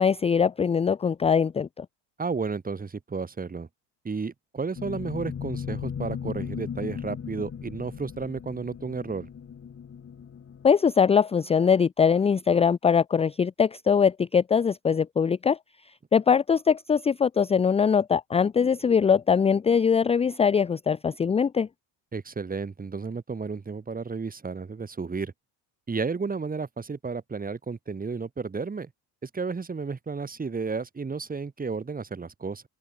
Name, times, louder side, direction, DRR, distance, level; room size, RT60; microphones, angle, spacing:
voice 1, 0.0-1.9 10.6-15.6 16.1-21.7, left 6 dB, 15° left, 0.4 m, -22 dB
voice 2, 2.2-3.7 4.0-9.3 22.1-25.3 25.9-28.9 29.2-32.6, right 4 dB, 20° right, 2.1 m, -32 dB
sound 1, 4.8-10.7, left 7 dB, 30° left, 2.2 m, -37 dB
open air
cardioid pair, 110°, 44 cm